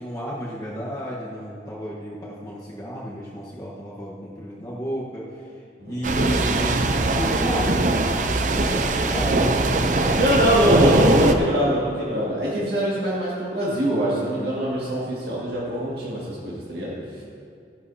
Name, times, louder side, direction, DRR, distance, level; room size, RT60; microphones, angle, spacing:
voice 1, 0.0-5.4 5.8-6.8 7.1-8.3 8.6-11.2, equal, 20° left, -6 dB, 1.2 m, -32 dB
voice 2, 5.8-6.1 10.0-17.0, equal, 60° right, -7 dB, 2.1 m, -24 dB
sound 1, 6.0-11.4, right 2 dB, 45° right, 0.6 m, -20 dB
15.5 x 11.0 x 2.8 m, 2.3 s
head